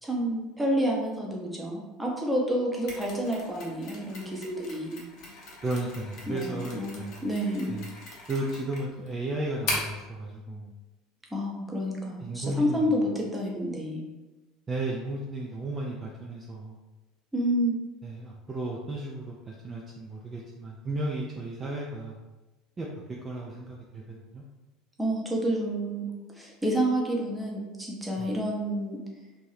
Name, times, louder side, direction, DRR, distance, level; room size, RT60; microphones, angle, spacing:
voice 1, 0.0-5.1 6.3-7.7 11.3-14.0 17.3-17.8 25.0-29.0, right 1 dB, 5° right, -2 dB, 0.7 m, -29 dB
Mechanisms, 2.9-10.0, left 2 dB, 50° left, 0.7 m, -39 dB
voice 2, 5.6-7.2 7.7-7.9 8.3-10.7 12.2-13.0 14.7-16.8 18.0-22.2 22.8-24.4 28.2-28.3, right 2 dB, 25° right, -3 dB, 0.4 m, -34 dB
2.6 x 2.2 x 3.3 m, 1.1 s
figure-of-eight pair, 70°, 0 cm